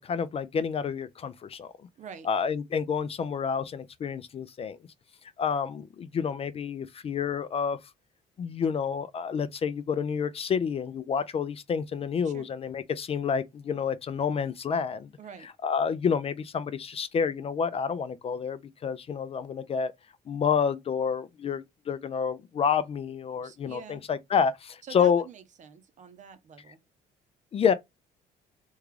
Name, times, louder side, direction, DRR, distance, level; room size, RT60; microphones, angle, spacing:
voice 1, 0.0-1.7 2.2-4.8 5.4-7.8 8.4-15.1 15.6-19.9 20.3-25.2 27.5-27.7, left 6 dB, 35° left, 0.4 m, -29 dB
voice 2, 2.0-2.3 12.2-12.5 15.2-15.5 23.4-24.0 24.8-26.8, right 7 dB, 45° right, 0.7 m, -46 dB
3.6 x 2.3 x 3.1 m
cardioid pair, 110°, 17 cm